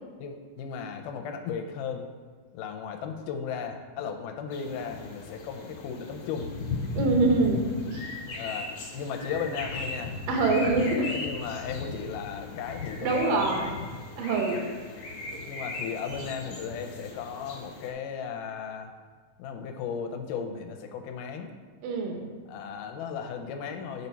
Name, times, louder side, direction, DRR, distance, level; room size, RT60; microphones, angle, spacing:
voice 1, 0.2-2.1 2.5-6.5 8.3-10.2 11.1-13.7 14.3-14.6 15.4-18.9 19.4-21.5 22.5-24.1, left 6 dB, 85° left, 6 dB, 2.1 m, -36 dB
sound 1, 4.5-17.9, left 3 dB, 65° left, 1.8 m, -37 dB
voice 2, 6.9-7.6 7.9-8.2 10.3-11.1 13.0-13.7 14.2-14.6 15.3-15.4 21.8-22.3, right 3 dB, 85° right, 2 dB, 2.6 m, -25 dB
8.3 x 4.1 x 4.5 m, 1.5 s
omnidirectional pair, 3.8 m